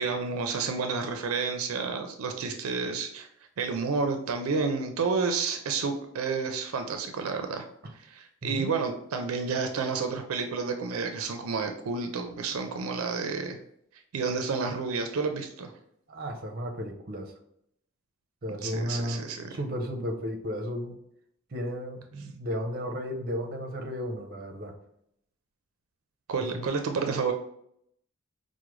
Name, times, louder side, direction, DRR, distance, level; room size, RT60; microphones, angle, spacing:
voice 1, 0.0-3.3 3.6-7.6 8.0-13.6 14.1-15.7 18.6-19.5 26.3-27.3, right 4 dB, 85° right, 6 dB, 0.4 m, -30 dB
voice 2, 16.1-17.3 18.4-19.2 19.5-21.0 21.5-24.7 26.5-26.6, equal, 45° right, 3 dB, 0.6 m, -34 dB
4.7 x 2.1 x 3.0 m, 0.73 s
head